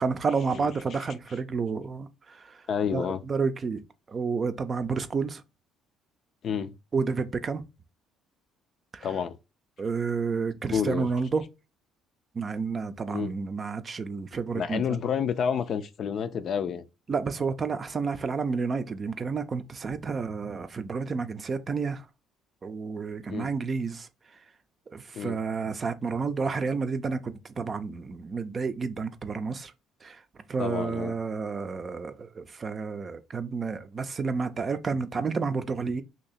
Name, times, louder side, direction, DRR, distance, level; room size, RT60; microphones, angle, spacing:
voice 1, 0.0-2.6 2.9-3.8 4.1-5.4 6.9-7.6 8.9-9.1 9.8-11.4 12.3-14.8 17.1-22.0 22.6-24.1 24.9-29.7 30.0-30.2 30.5-36.0, right 5 dB, 40° right, 0.5 m, -30 dB
voice 2, 2.7-3.2 6.4-6.7 9.0-9.4 10.7-11.1 13.1-13.3 14.5-16.8 23.3-23.5 25.1-25.4 30.6-31.1, left 7 dB, 55° left, 0.4 m, -29 dB
2.9 x 2.7 x 4.1 m
hypercardioid pair, 55°, 0 cm